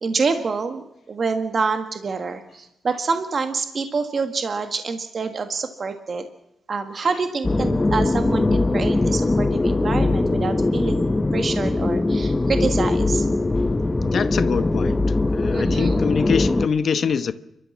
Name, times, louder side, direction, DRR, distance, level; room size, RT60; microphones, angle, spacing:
voice 1, 0.0-6.3 6.7-11.1 11.3-13.3 15.5-16.0, right 4 dB, 40° right, 1.6 m, -27 dB
sound 1, 7.4-16.7, left 2 dB, 15° left, 0.8 m, -21 dB
voice 2, 14.0-15.0 15.3-17.3, left 6 dB, 55° left, 1.0 m, -24 dB
30.0 x 13.5 x 7.3 m
wide cardioid pair, 130°, 0 cm